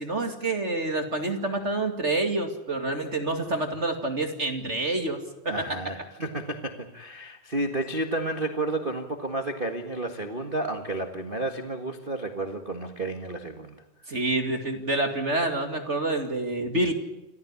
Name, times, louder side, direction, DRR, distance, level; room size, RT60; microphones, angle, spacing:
voice 1, 0.0-5.2 5.4-5.6 14.1-16.9, right 2 dB, 25° right, 5 dB, 1.8 m, -27 dB
voice 2, 5.5-13.8, right 2 dB, 85° right, 5 dB, 0.4 m, -31 dB
28.0 x 15.0 x 9.8 m, 0.92 s
omnidirectional pair, 4.2 m